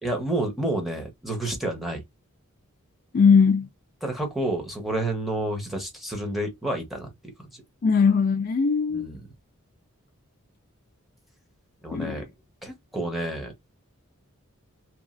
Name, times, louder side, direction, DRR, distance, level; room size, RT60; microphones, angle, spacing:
voice 1, 0.0-2.0 4.0-7.1 7.5-7.6 8.9-9.2 11.8-12.2 12.6-13.5, right 1 dB, ahead, 0.9 m, -29 dB
voice 2, 3.1-3.7 7.8-9.1 11.9-12.2, left 5 dB, 40° left, 0.3 m, -20 dB
2.9 x 2.5 x 2.5 m
head